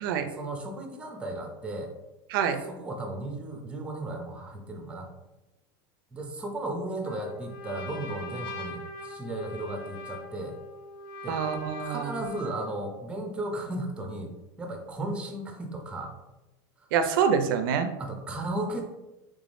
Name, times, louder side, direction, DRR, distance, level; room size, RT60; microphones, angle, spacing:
voice 1, 0.3-1.9 2.6-5.1 6.1-10.5 11.2-11.4 11.8-14.3 14.6-16.1 18.0-18.8, right 1 dB, 10° right, 4 dB, 0.5 m, -35 dB
voice 2, 2.3-2.6 11.3-12.1 16.9-17.9, right 7 dB, 75° right, 8 dB, 0.4 m, -26 dB
Trumpet, 7.0-12.7, left 2 dB, 75° left, 0.7 m, -41 dB
3.4 x 3.3 x 2.5 m, 1.0 s
supercardioid pair, 145°, 12 cm